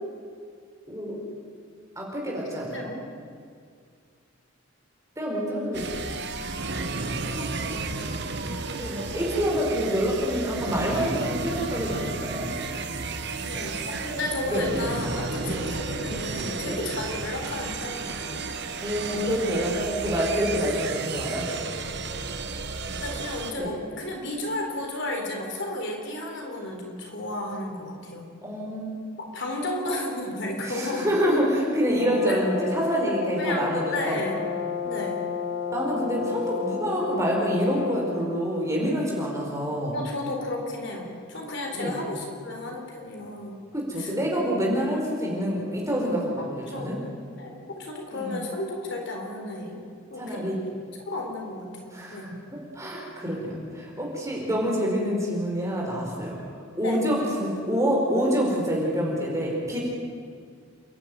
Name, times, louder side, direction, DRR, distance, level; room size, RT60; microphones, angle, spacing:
voice 1, 2.0-2.9 5.2-6.0 8.8-12.5 14.5-14.7 15.4-15.6 16.6-16.9 18.8-21.5 23.5-23.7 28.4-28.9 30.7-34.2 35.7-40.0 41.7-42.0 43.7-46.9 48.1-48.4 50.2-50.6 51.9-52.3 52.7-56.4 56.8-59.8, equal, 15° right, -2 dB, 4.8 m, -27 dB
voice 2, 2.5-3.0 7.4-7.9 13.4-18.4 23.0-28.3 29.2-31.1 32.3-32.4 33.4-34.4 34.8-35.3 39.9-43.6 44.0-44.1 46.4-47.0 47.4-49.8 50.1-50.5 51.1-52.4 56.8-57.0, left 2 dB, 55° left, 1 dB, 4.0 m, -33 dB
sound 1, 5.7-23.5, right 3 dB, 50° right, 1.4 m, -32 dB
Brass instrument, 31.8-38.1, left 7 dB, 85° left, 3.3 m, -32 dB
28.5 x 12.0 x 9.3 m, 2.2 s
head